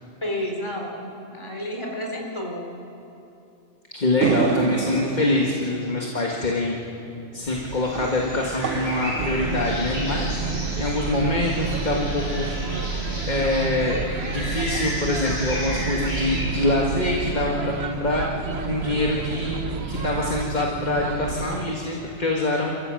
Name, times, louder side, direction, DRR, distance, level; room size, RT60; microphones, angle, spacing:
voice 1, 0.2-2.7, left 1 dB, 25° left, -1 dB, 4.0 m, -31 dB
voice 2, 3.9-6.8 7.3-12.5 13.3-18.4 18.7-19.6 19.9-22.7, left 2 dB, 40° left, -1 dB, 1.9 m, -25 dB
sound 1, 4.2-10.7, right 6 dB, 85° right, 1.3 m, -30 dB
sound 2, 7.4-16.4, equal, 65° left, 6.9 m, -33 dB
sound 3, 9.2-21.7, right 5 dB, 65° right, 1.2 m, -30 dB
28.5 x 14.0 x 7.7 m, 2.7 s
omnidirectional pair, 1.2 m